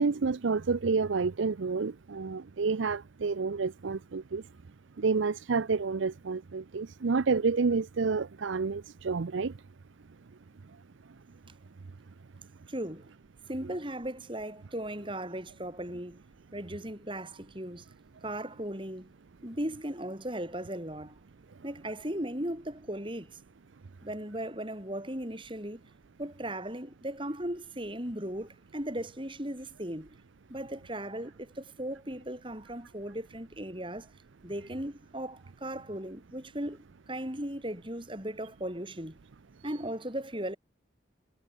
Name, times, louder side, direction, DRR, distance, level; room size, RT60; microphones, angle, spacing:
voice 1, 0.0-4.4 5.0-9.5, right 4 dB, 80° right, 0.6 m, -29 dB
voice 2, 12.7-13.1 13.5-16.2 16.5-17.9 18.2-19.1 19.4-21.2 21.6-23.4 24.0-25.8 26.2-30.2 30.5-34.1 34.4-39.2 39.6-40.6, right 1 dB, 25° right, 5.8 m, -37 dB
head